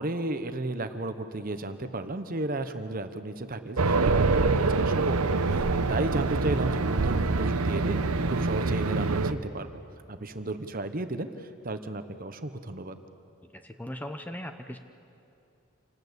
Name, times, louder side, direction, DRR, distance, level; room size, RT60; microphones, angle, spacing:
voice 1, 0.0-8.0 8.3-9.7 10.1-13.0, right 2 dB, 40° right, 9 dB, 1.0 m, -34 dB
Race car auto racing, 3.8-9.3, right 3 dB, 80° right, 0.9 m, -25 dB
voice 2, 13.6-14.8, left 1 dB, 5° left, 7 dB, 0.8 m, -38 dB
27.5 x 19.0 x 8.1 m, 2.7 s
head